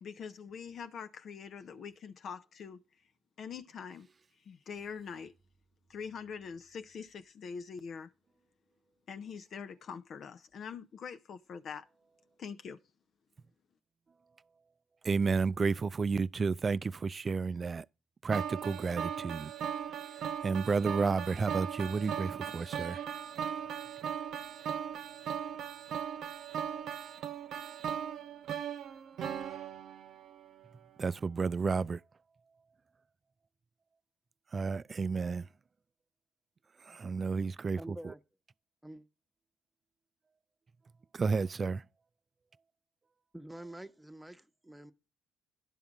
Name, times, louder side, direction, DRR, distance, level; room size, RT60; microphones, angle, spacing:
voice 1, 0.0-2.8 3.4-4.1 4.4-5.3 5.9-8.1 9.1-11.9 12.4-12.8, left 6 dB, 60° left, 0.5 m, -44 dB
voice 2, 15.0-17.9 18.2-19.5 19.9-23.0 31.0-32.0 34.5-35.5 36.8-38.1 41.1-41.9, right 4 dB, 40° right, 0.3 m, -32 dB
sound 1, 18.3-30.5, right 8 dB, 70° right, 0.8 m, -38 dB
voice 3, 37.8-38.2 38.8-39.1 43.3-44.9, right 1 dB, 5° right, 1.0 m, -47 dB
10.5 x 3.7 x 7.2 m
hypercardioid pair, 55°, 0 cm